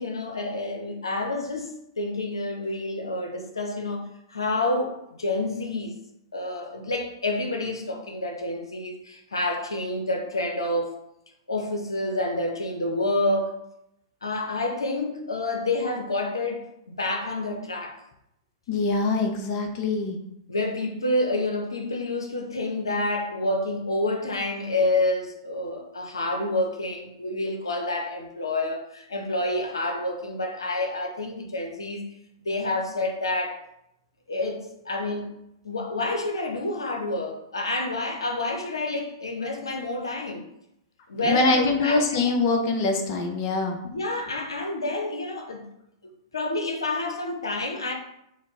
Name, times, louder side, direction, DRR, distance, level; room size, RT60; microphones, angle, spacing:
voice 1, 0.0-4.0 4.3-5.9 6.3-10.9 11.5-13.5 14.2-16.7 17.0-17.9 20.5-32.1 32.4-33.6 34.3-35.3 35.6-40.4 41.1-42.4 43.8-45.7 46.3-47.9, left 2 dB, 90° left, 2 dB, 0.6 m, -28 dB
voice 2, 18.7-20.2 41.2-43.8, left 3 dB, 45° left, 3 dB, 0.6 m, -24 dB
4.3 x 2.0 x 3.5 m, 0.81 s
hypercardioid pair, 110°, 2 cm